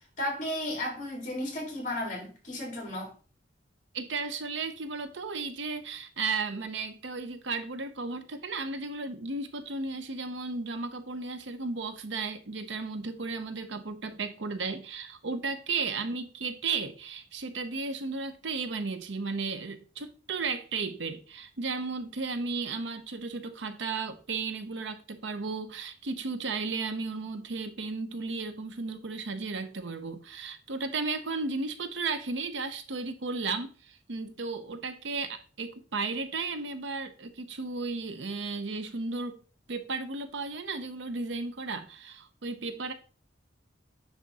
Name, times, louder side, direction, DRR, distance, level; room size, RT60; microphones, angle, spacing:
voice 1, 0.2-3.1, left 1 dB, 45° left, 3.8 m, -34 dB
voice 2, 3.9-39.4 39.7-42.9, right 4 dB, 75° right, 0.8 m, -34 dB
9.7 x 3.7 x 4.1 m
head